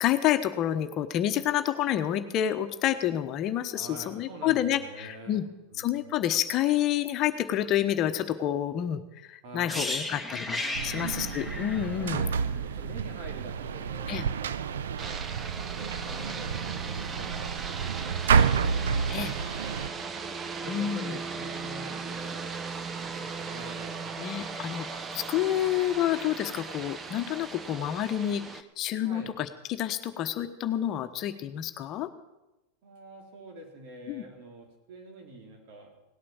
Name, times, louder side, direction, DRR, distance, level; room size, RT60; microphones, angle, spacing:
voice 1, 0.0-5.5 5.8-12.3 14.1-14.2 19.1-19.3 20.7-21.2 24.2-32.1 34.1-34.2, left 11 dB, 45° left, 8 dB, 1.1 m, -29 dB
voice 2, 3.7-6.2 9.4-9.9 10.9-11.0 12.0-15.2 15.7-18.8 20.6-24.1 29.0-29.4 32.8-35.9, right 1 dB, 60° right, 2 dB, 3.8 m, -46 dB
sound 1, 9.7-13.5 13.8-14.0, left 2 dB, ahead, 1.7 m, -35 dB
sound 2, 10.7-19.9, right 6 dB, 85° right, 0.6 m, -29 dB
sound 3, 15.0-28.6, right 5 dB, 25° right, 1.0 m, -38 dB
17.5 x 8.6 x 7.2 m, 1.0 s
hypercardioid pair, 110°, 0 cm